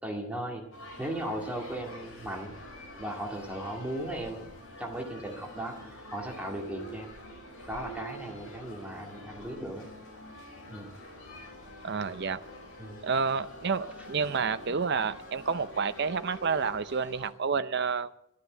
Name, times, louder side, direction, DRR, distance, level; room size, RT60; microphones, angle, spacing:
voice 1, 0.0-0.7 1.0-2.5 3.0-4.5 4.8-7.1 7.7-9.9 10.7-10.9 12.8-13.0, right 1 dB, 5° right, 0 dB, 2.0 m, -37 dB
sound 1, 0.7-17.3, equal, 75° left, 4.7 m, -46 dB
voice 2, 11.8-12.4 13.0-18.1, right 5 dB, 50° right, 13 dB, 0.6 m, -29 dB
13.0 x 9.7 x 7.8 m, 0.79 s
head